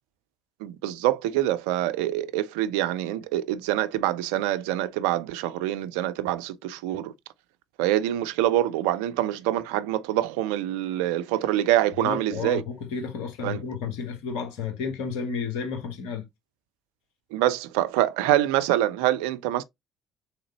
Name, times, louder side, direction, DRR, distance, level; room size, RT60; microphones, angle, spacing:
voice 1, 0.6-7.1 7.8-12.6 13.4-13.6 17.3-19.6, right 13 dB, 75° right, 0.3 m, -25 dB
voice 2, 12.0-16.2, left 5 dB, 70° left, 1.1 m, -32 dB
3.8 x 3.3 x 2.8 m
hypercardioid pair, 55°, 0 cm